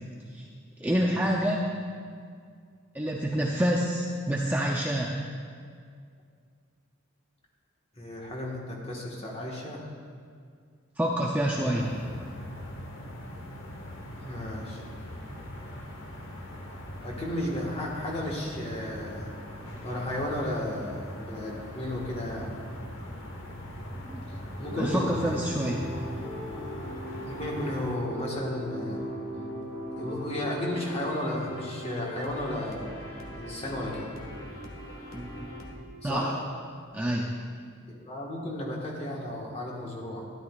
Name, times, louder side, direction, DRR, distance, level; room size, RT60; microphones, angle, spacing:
voice 1, 0.8-1.6 2.9-5.1 11.0-11.9 24.1-24.2 24.7-25.8 35.1-35.3 36.0-36.3 36.9-37.3, equal, 10° right, -2 dB, 0.4 m, -27 dB
voice 2, 7.9-9.8 11.6-11.9 14.2-14.8 17.0-19.3 19.8-22.5 24.6-25.4 27.2-29.1 30.0-32.9 33.4-34.1 36.0-36.3 37.9-40.2, left 1 dB, 30° left, -3 dB, 1.4 m, -33 dB
sound 1, 11.8-28.0, equal, 65° left, 1.0 m, -41 dB
sound 2, 24.6-35.7, equal, 80° left, 1.3 m, -39 dB
12.5 x 11.0 x 2.4 m, 2.1 s
head